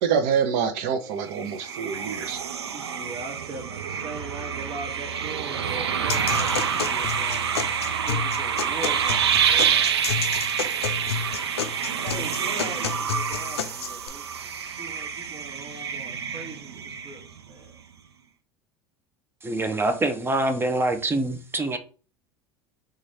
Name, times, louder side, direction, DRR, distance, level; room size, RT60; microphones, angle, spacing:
voice 1, 0.0-2.4, right 7 dB, 60° right, 0.8 m, -26 dB
sound 1, 1.2-17.5, right 7 dB, 90° right, 0.4 m, -27 dB
voice 2, 2.7-7.6 8.0-10.2 10.8-10.9 12.0-17.8, right 2 dB, 45° right, 1.4 m, -41 dB
sound 2, 6.1-14.1, left 7 dB, 85° left, 0.4 m, -31 dB
voice 3, 19.4-21.8, right 2 dB, 15° right, 0.7 m, -25 dB
3.1 x 2.5 x 4.1 m
hypercardioid pair, 80°, 13 cm